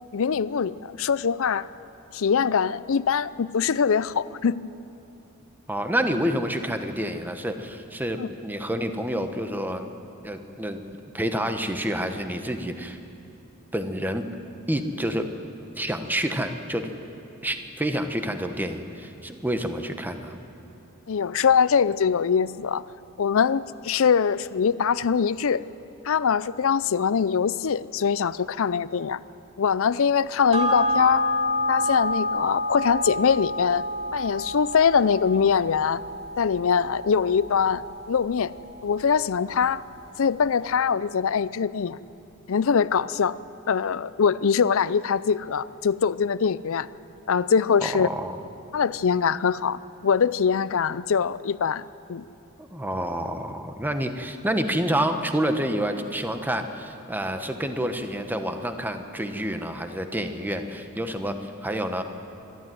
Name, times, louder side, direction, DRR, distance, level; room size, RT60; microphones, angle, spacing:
voice 1, 0.1-1.7 2.1-4.6 8.2-8.3 21.1-22.8 23.2-25.6 26.0-29.2 29.6-31.3 31.7-33.8 34.1-36.0 36.4-37.8 38.1-38.5 38.8-39.8 40.2-42.0 42.5-43.4 43.7-46.9 47.3-48.1 48.7-51.8 52.1-52.2, left 6 dB, 65° left, 17 dB, 0.5 m, -23 dB
voice 2, 5.7-9.9 10.2-10.8 11.1-13.0 13.7-14.3 14.7-15.3 15.7-16.9 17.4-20.4 47.8-48.4 52.6-62.0, right 1 dB, 10° right, 7 dB, 1.1 m, -28 dB
sound 1, 30.5-39.3 39.6-39.7, left 1 dB, 30° right, 2.5 m, -29 dB
24.5 x 12.5 x 9.3 m, 2.8 s
head